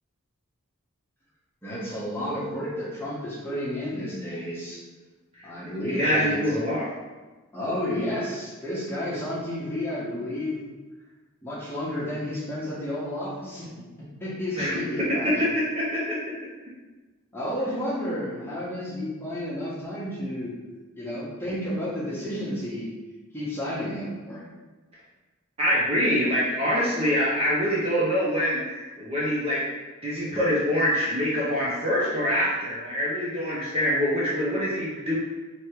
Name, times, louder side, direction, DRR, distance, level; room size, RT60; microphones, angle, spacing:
voice 1, 1.6-4.8 5.4-6.4 7.5-10.6 11.4-13.8 14.2-15.4 17.3-20.5 21.0-22.9 23.3-24.4, left 1 dB, 10° left, -9 dB, 1.2 m, -31 dB
voice 2, 5.9-6.9 14.5-16.2 25.6-29.6 30.0-35.2, equal, 25° right, -7 dB, 0.6 m, -25 dB
3.1 x 2.9 x 4.5 m, 1.2 s
head